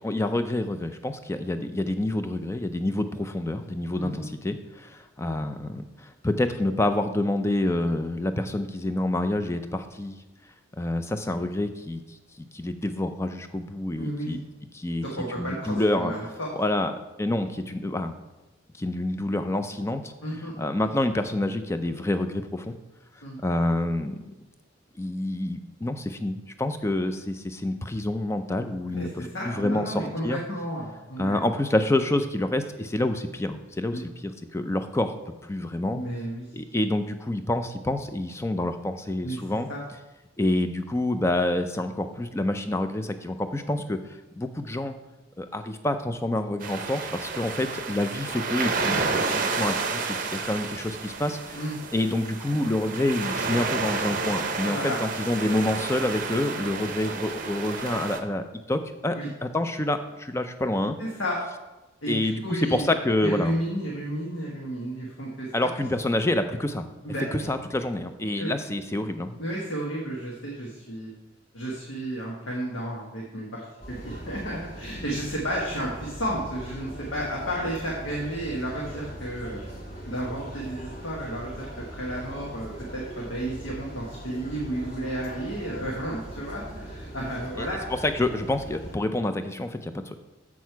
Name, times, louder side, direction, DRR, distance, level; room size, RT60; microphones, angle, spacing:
voice 1, 0.0-10.2 10.8-12.2 12.5-14.4 14.7-15.0 15.4-16.1 16.6-16.9 17.2-18.1 18.8-20.1 20.6-22.8 23.4-24.3 25.0-30.4 31.2-35.1 35.4-36.0 36.5-39.7 40.4-44.0 44.4-44.9 45.4-51.6 51.9-61.0 62.1-63.6 65.5-66.9 67.3-69.4 87.6-90.2, left 1 dB, 15° left, 9 dB, 0.4 m, -27 dB
voice 2, 3.9-4.3 14.0-14.4 15.0-16.5 20.2-20.5 23.2-23.4 28.9-29.1 29.3-31.4 33.9-34.0 35.9-36.5 39.2-39.4 39.7-39.8 51.5-51.8 54.6-55.0 59.1-59.3 61.0-61.4 62.0-62.9 63.2-65.7 67.0-67.3 68.4-68.5 69.4-71.1 71.5-79.6 80.1-87.8, right 1 dB, 70° left, -3 dB, 1.4 m, -32 dB
sound 1, 46.6-58.2, right 4 dB, 40° right, 0.7 m, -30 dB
sound 2, 73.8-89.0, right 1 dB, 30° left, 1.6 m, -40 dB
7.4 x 6.2 x 4.6 m, 1.0 s
head